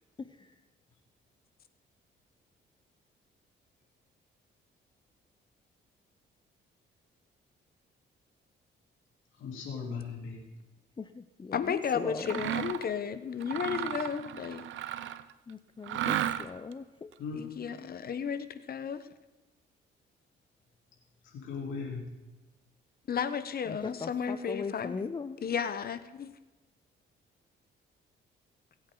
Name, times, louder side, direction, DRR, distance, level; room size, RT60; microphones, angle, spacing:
voice 1, 0.2-0.6 11.0-12.4 15.5-17.1 23.7-25.4, left 4 dB, 25° left, 10 dB, 0.6 m, -39 dB
voice 2, 9.4-10.4 17.2-17.4 21.2-22.0, left 5 dB, 80° left, -2 dB, 3.6 m, -38 dB
voice 3, 11.5-14.6 17.4-19.1 23.1-25.0 25.4-26.3, left 7 dB, 50° left, 11 dB, 1.1 m, -33 dB
Mechanisms, 12.2-12.9 13.4-15.3 15.8-16.7, right 11 dB, 75° right, 0.7 m, -34 dB
20.0 x 8.6 x 3.9 m, 1.1 s
cardioid pair, 90°, 20 cm